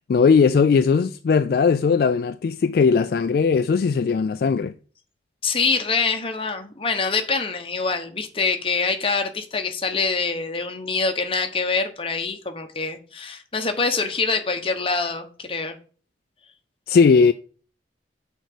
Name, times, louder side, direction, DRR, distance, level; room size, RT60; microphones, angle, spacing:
voice 1, 0.1-4.7 16.9-17.3, left 5 dB, 60° left, 0.3 m, -18 dB
voice 2, 5.4-15.8, left 4 dB, 30° left, 1.0 m, -25 dB
6.4 x 4.6 x 6.4 m
head